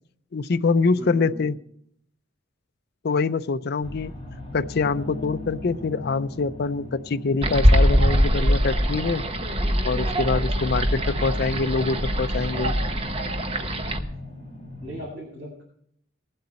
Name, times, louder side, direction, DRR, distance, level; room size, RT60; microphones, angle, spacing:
voice 1, 0.3-1.6 3.0-4.1 4.5-9.2 9.8-12.7, left 4 dB, 55° left, 12 dB, 0.5 m, -24 dB
voice 2, 1.0-1.5 14.6-15.6, right 1 dB, 55° right, -4 dB, 4.2 m, -38 dB
sound 1, 3.8-15.0, left 1 dB, 30° left, 2.8 m, -39 dB
sound 2, 7.4-14.0, equal, 30° right, 1.0 m, -22 dB
19.5 x 7.8 x 4.2 m, 0.69 s
head